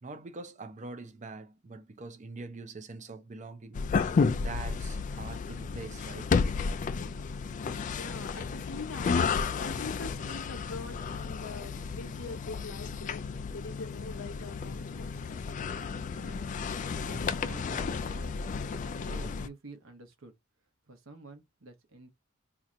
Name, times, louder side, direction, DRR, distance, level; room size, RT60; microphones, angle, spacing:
voice 1, 0.0-3.8 4.3-6.3, right 3 dB, 35° right, 0.5 m, -43 dB
sound 1, 3.7-19.5, left 5 dB, 40° left, 0.3 m, -32 dB
voice 2, 8.0-13.2 13.5-15.3, left 3 dB, 75° left, 0.8 m, -43 dB
voice 3, 15.9-16.6 17.0-18.3 18.7-20.3 20.9-22.1, right 3 dB, 70° right, 1.0 m, -49 dB
2.8 x 2.5 x 4.2 m
head